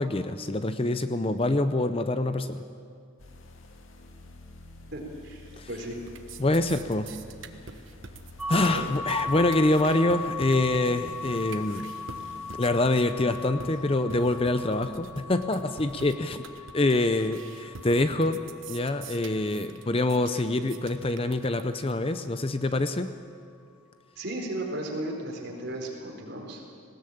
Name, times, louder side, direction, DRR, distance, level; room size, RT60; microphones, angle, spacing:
voice 1, 0.0-2.6 5.6-5.7 6.4-7.1 8.5-11.9 12.6-16.4 16.7-18.4 18.7-23.1, left 2 dB, 25° left, 10 dB, 0.6 m, -25 dB
sound 1, 3.2-12.6, left 1 dB, 75° left, 1.9 m, -49 dB
voice 2, 4.9-6.0 8.6-8.8 24.2-26.6, right 1 dB, 50° right, 0 dB, 4.3 m, -35 dB
sound 2, 5.3-5.7 6.0-22.0, right 4 dB, 70° right, 1.2 m, -45 dB
sound 3, 8.4-20.1, left 4 dB, 5° right, 0.8 m, -38 dB
19.5 x 17.5 x 8.7 m, 2.3 s
head